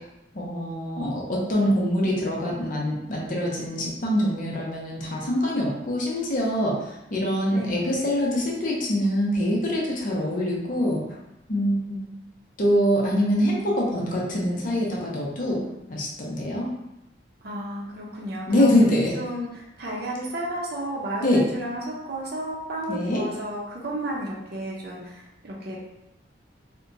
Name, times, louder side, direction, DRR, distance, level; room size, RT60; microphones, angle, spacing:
voice 1, 0.3-6.8 7.1-11.0 11.5-12.0 12.6-15.6 15.9-16.7 18.5-19.2 21.2-21.4 22.9-23.2, equal, 45° left, -3 dB, 0.6 m, -24 dB
voice 2, 17.4-18.7 19.1-25.8, right 1 dB, 55° right, -3 dB, 0.6 m, -32 dB
2.8 x 2.1 x 2.6 m, 0.90 s
head